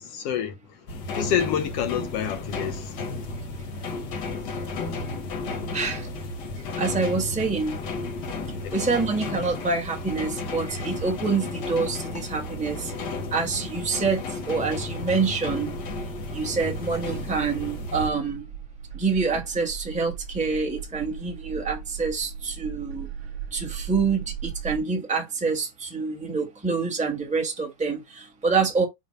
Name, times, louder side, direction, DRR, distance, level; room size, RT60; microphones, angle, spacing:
voice 1, 0.0-3.1 8.6-8.7, left 9 dB, 70° left, 1.5 m, -29 dB
sound 1, 0.9-18.1, left 3 dB, 55° left, 1.2 m, -33 dB
voice 2, 5.7-6.1 6.8-7.8 8.7-12.9 13.3-15.7 16.3-18.4 18.9-23.1 23.5-28.8, right 4 dB, 5° right, 0.7 m, -26 dB
sound 2, 15.5-24.8, right 8 dB, 80° right, 2.7 m, -38 dB
7.3 x 2.5 x 5.4 m
omnidirectional pair, 3.4 m